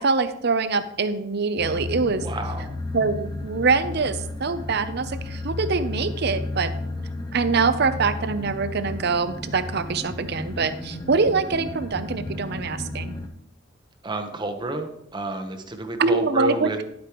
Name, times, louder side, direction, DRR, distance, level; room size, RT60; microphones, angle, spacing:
voice 1, 0.0-2.3 2.9-6.7 7.3-13.1 16.0-16.8, right 4 dB, 55° right, 11 dB, 0.7 m, -24 dB
sound 1, 1.6-13.3, left 2 dB, 20° left, 0.9 m, -33 dB
voice 2, 2.2-2.7 14.0-16.8, right 2 dB, 25° right, 4 dB, 1.0 m, -30 dB
11.5 x 8.3 x 3.1 m, 0.76 s
head